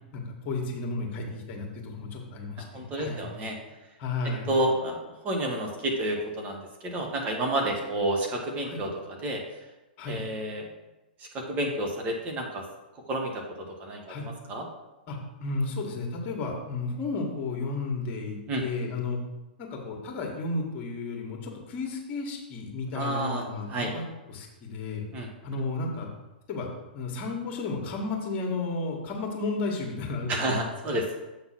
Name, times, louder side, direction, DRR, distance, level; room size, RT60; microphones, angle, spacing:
voice 1, 0.1-3.2 4.0-4.5 8.6-8.8 10.0-10.2 14.1-14.3 15.1-19.2 19.6-24.0 24.3-25.0 25.4-26.1 26.5-30.6, left 3 dB, 35° left, 0 dB, 1.9 m, -33 dB
voice 2, 2.6-3.5 4.5-5.0 5.2-9.4 10.1-10.6 11.3-12.6 13.1-14.1 14.5-14.6 18.5-18.6 22.9-23.4 23.7-23.9 25.1-25.3 30.3-31.0, right 1 dB, 30° right, 1 dB, 1.4 m, -30 dB
7.7 x 3.9 x 5.9 m, 1.0 s
hypercardioid pair, 115°, 5 cm